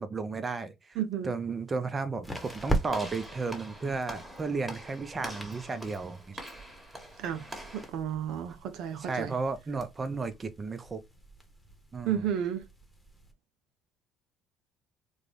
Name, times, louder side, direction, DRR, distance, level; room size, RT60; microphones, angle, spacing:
voice 1, 0.0-1.0 1.2-6.4 9.0-11.0 11.9-12.3, right 4 dB, 30° right, 0.7 m, -34 dB
sound 1, 0.9-13.3, right 2 dB, 5° left, 1.1 m, -41 dB
voice 2, 0.9-1.4 7.2-7.5 7.7-9.4 9.7-9.8 12.0-12.7, right 9 dB, 65° right, 0.4 m, -32 dB
Walk footsteps / Slam, 2.3-7.9, equal, 10° right, 1.5 m, -44 dB
3.7 x 2.3 x 3.4 m
hypercardioid pair, 65°, 0 cm